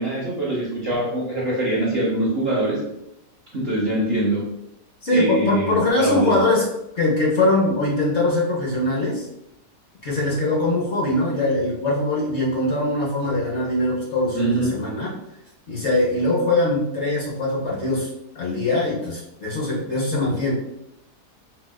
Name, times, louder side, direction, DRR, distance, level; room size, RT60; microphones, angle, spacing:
voice 1, 0.0-2.8 3.5-4.5 5.1-6.4 14.3-14.8, right 1 dB, 55° right, -5 dB, 0.7 m, -23 dB
voice 2, 5.0-6.7 7.0-9.3 10.0-15.1 15.7-18.1 18.3-20.5, left 2 dB, 55° left, -4 dB, 0.9 m, -22 dB
4.2 x 2.3 x 2.2 m, 0.83 s
omnidirectional pair, 1.7 m